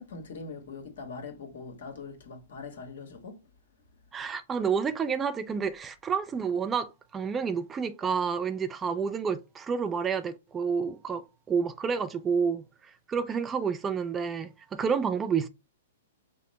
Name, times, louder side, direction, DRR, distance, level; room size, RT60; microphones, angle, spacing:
voice 1, 0.0-3.4, left 4 dB, 65° left, 1.4 m, -42 dB
voice 2, 4.1-12.6 13.1-15.5, right 6 dB, 20° right, 0.4 m, -29 dB
5.6 x 2.1 x 4.0 m
hypercardioid pair, 120°, 0 cm